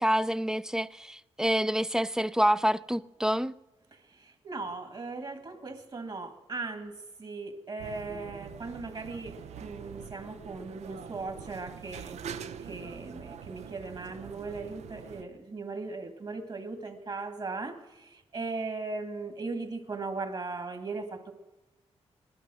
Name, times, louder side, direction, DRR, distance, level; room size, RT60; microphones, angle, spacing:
voice 1, 0.0-3.5, equal, 5° right, 0.4 m, -27 dB
voice 2, 3.9-21.3, right 3 dB, 45° right, 1.9 m, -38 dB
sound 1, 7.8-15.2, right 7 dB, 90° right, 0.7 m, -44 dB
19.0 x 11.5 x 6.2 m
cardioid pair, 70°, 11 cm